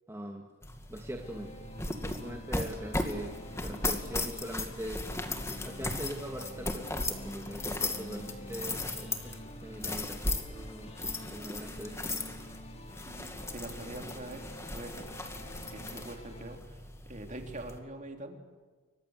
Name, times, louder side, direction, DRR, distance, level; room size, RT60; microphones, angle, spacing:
voice 1, 0.1-0.5 0.9-5.1 5.6-10.9 11.3-12.1, equal, 10° right, 1 dB, 2.1 m, -42 dB
sound 1, 0.6-17.8, left 2 dB, 15° left, 2.3 m, -37 dB
sound 2, 1.2-16.6, left 1 dB, 30° left, 2.7 m, -48 dB
voice 2, 13.0-14.4 14.7-15.1 15.7-18.4, right 1 dB, 35° right, 4 dB, 3.6 m, -44 dB
29.5 x 25.0 x 8.1 m, 1.4 s
head